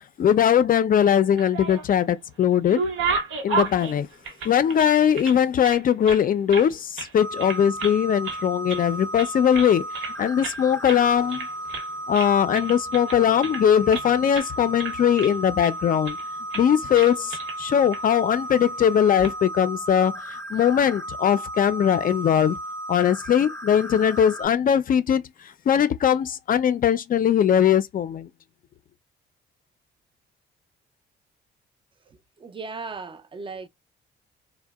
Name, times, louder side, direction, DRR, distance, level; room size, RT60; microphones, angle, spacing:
voice 1, 0.2-2.8 3.4-4.1 4.4-11.5 12.1-16.2 16.5-22.6 22.9-25.2 25.7-28.3, left 9 dB, 45° left, 0.4 m, -20 dB
sound 1, 1.2-2.1 2.4-5.4 5.6-6.7 7.0-7.1 7.4-8.0 8.2-8.9 9.2-10.1 10.4-10.6 10.9-11.0 11.3-11.9 12.1-14.1 14.3-14.5 14.8-15.7 16.0-16.2 16.5-16.7 16.9-17.6 17.9-18.0 19.0-19.3, right 4 dB, 80° right, 0.9 m, -32 dB
sound 2, 7.2-24.5, right 1 dB, 15° left, 0.7 m, -35 dB
voice 2, 32.4-33.7, right 4 dB, 25° right, 0.4 m, -36 dB
2.6 x 2.1 x 2.3 m
cardioid pair, 90°, 20 cm